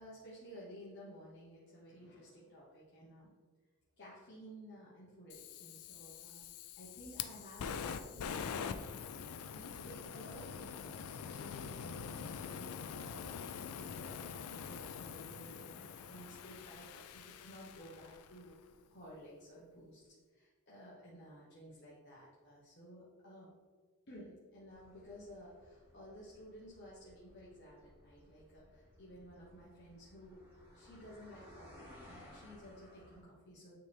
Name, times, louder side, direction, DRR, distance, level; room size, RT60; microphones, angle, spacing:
voice 1, 0.0-3.3 4.0-6.5 6.8-13.5 13.8-18.5 18.9-23.5 24.1-30.4 30.7-33.9, equal, 50° left, -7 dB, 1.1 m, -54 dB
Fire, 5.3-18.4, left 7 dB, 85° left, 0.4 m, -45 dB
sound 1, 24.7-33.2, equal, 10° right, 1.7 m, -60 dB
9.2 x 3.3 x 3.4 m, 1.4 s
head